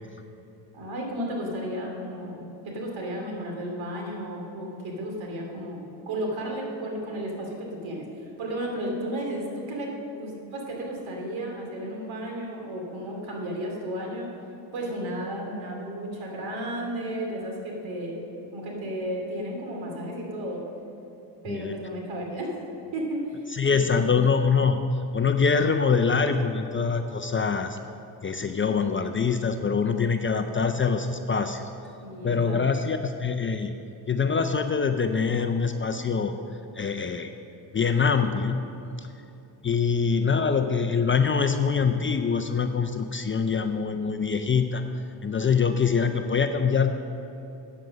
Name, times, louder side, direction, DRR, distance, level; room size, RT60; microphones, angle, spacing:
voice 1, 0.7-8.1 8.4-14.3 14.7-18.2 18.5-20.6 21.4-22.5 22.9-24.2 32.0-32.7, right 1 dB, 70° right, 0 dB, 2.7 m, -33 dB
voice 2, 23.5-24.8 25.1-27.8 28.2-31.7 32.2-33.8 34.1-36.4 36.7-37.3 37.7-38.6 39.0-39.1 39.6-44.8 45.2-46.9, left 5 dB, 25° left, 7 dB, 0.5 m, -24 dB
9.1 x 7.6 x 6.3 m, 2.9 s
cardioid pair, 85°, 48 cm